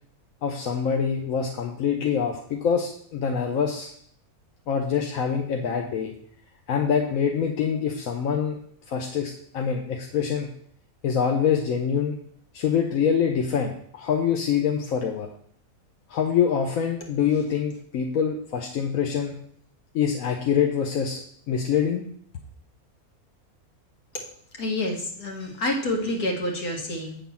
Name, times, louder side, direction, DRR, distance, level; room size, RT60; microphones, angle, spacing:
voice 1, 0.4-3.9 4.7-6.1 6.7-8.6 8.9-10.5 11.0-12.2 12.5-15.3 16.1-19.4 19.9-21.2 21.5-22.0, left 7 dB, 70° left, 1 dB, 1.2 m, -25 dB
voice 2, 24.6-27.2, left 1 dB, 90° left, 0 dB, 2.2 m, -28 dB
8.6 x 3.9 x 6.9 m, 0.63 s
omnidirectional pair, 1.5 m